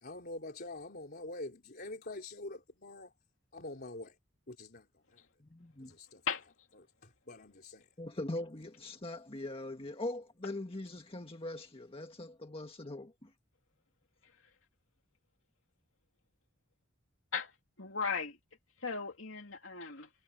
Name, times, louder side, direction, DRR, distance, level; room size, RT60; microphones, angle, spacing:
voice 1, 0.0-3.1 3.5-4.2 4.5-5.3 5.8-6.3 7.0-7.9, left 2 dB, 50° left, 3.6 m, -45 dB
voice 2, 5.4-5.9 8.0-13.3, left 2 dB, 30° left, 1.7 m, -41 dB
voice 3, 17.8-18.4 18.8-20.1, left 5 dB, 70° left, 3.2 m, -37 dB
head